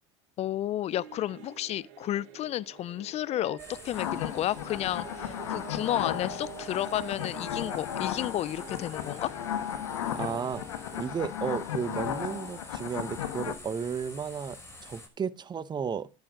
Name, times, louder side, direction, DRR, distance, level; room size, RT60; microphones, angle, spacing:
voice 1, 0.4-9.3, left 13 dB, 45° left, 0.6 m, -32 dB
sound 1, 0.9-10.6, right 11 dB, 70° right, 4.2 m, -47 dB
sound 2, 3.6-15.1, left 1 dB, 15° left, 5.9 m, -49 dB
sound 3, 3.9-13.5, left 10 dB, 85° left, 1.6 m, -35 dB
voice 2, 10.1-10.6 11.0-16.1, right 6 dB, 30° right, 1.2 m, -33 dB
10.5 x 10.5 x 5.0 m
hypercardioid pair, 85°, 16 cm